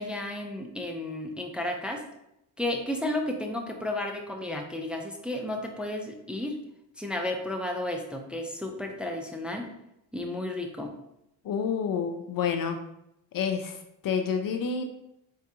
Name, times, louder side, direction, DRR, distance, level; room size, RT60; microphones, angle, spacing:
voice 1, 0.0-2.0 2.6-6.5 7.0-9.6 10.1-10.9, left 1 dB, ahead, 2 dB, 0.5 m, -32 dB
voice 2, 11.4-12.8 13.3-14.8, left 6 dB, 50° left, 5 dB, 0.5 m, -29 dB
4.4 x 2.4 x 2.8 m, 0.83 s
supercardioid pair, 55°, 46 cm